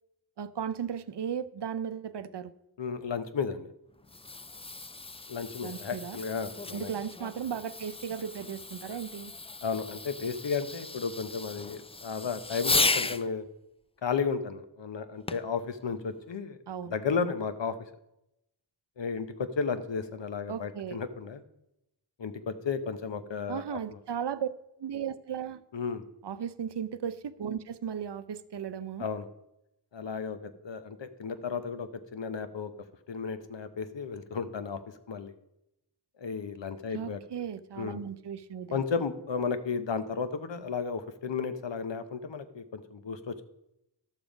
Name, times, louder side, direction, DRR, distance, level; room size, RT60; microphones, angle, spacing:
voice 1, 0.4-2.5 5.6-6.2 6.7-9.3 16.7-16.9 20.5-21.0 23.5-24.5 24.8-25.6 26.2-29.0 36.9-38.8, right 8 dB, 75° right, 15 dB, 0.6 m, -36 dB
voice 2, 2.8-3.7 5.3-6.9 9.6-13.5 14.0-16.6 16.9-17.8 19.0-21.4 22.2-24.0 25.7-26.1 29.0-29.3 29.9-32.7 33.1-34.8 35.1-35.3 36.2-37.2 37.8-38.0 38.7-43.4, left 5 dB, 90° left, 11 dB, 0.8 m, -33 dB
Fireworks, 3.9-13.3 15.3-15.6 16.3-16.4, left 3 dB, 15° left, 0.3 m, -35 dB
11.5 x 7.1 x 5.1 m, 0.85 s
wide cardioid pair, 55°, 43 cm